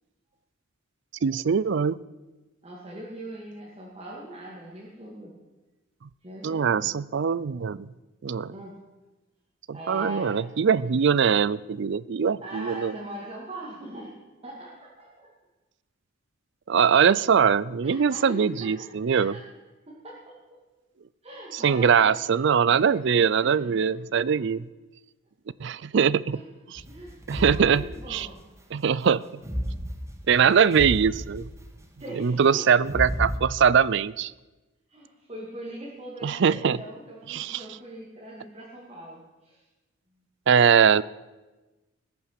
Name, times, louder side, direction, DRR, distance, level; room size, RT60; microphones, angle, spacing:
voice 1, 1.2-2.0 6.4-7.9 8.2-8.5 9.7-12.9 16.7-19.3 21.5-24.6 25.6-26.4 26.7-26.8 27.3-27.8 28.1-28.3 28.7-29.2 30.3-31.5 32.2-34.3 36.2-36.8 37.3-37.6 40.5-41.0, right 7 dB, 55° right, 20 dB, 0.4 m, -22 dB
voice 2, 2.6-5.3 6.2-6.9 8.5-8.8 9.7-10.4 12.4-14.2 14.4-15.3 17.8-19.4 19.9-20.6 21.2-22.1 22.6-22.8 23.4-23.8 24.2-24.4 26.3-26.4 26.9-28.4 32.0-32.7 34.9-39.6, right 1 dB, 30° right, -6 dB, 2.3 m, -41 dB
sound 1, 26.8-28.4 29.4-32.0 32.8-33.4, equal, 15° right, 1.3 m, -33 dB
20.0 x 7.1 x 6.7 m, 1.1 s
head